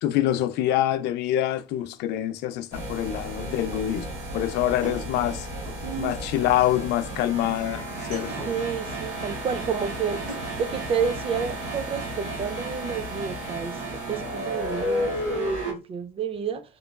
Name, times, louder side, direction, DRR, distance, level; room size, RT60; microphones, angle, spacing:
voice 1, 0.0-4.1 4.3-5.5 6.0-8.3, left 12 dB, 80° left, 0.4 m, -25 dB
sound 1, 2.7-15.7, right 1 dB, 70° right, 1.5 m, -32 dB
sound 2, 2.7-2.8 4.8-5.9 7.9-8.7 10.1-10.6, right 1 dB, 90° right, 1.4 m, -40 dB
voice 2, 5.8-6.2 8.5-10.2 10.6-13.8 14.1-16.6, right 6 dB, 35° right, 0.4 m, -30 dB
3.0 x 2.2 x 2.3 m
cardioid pair, 110°, 17 cm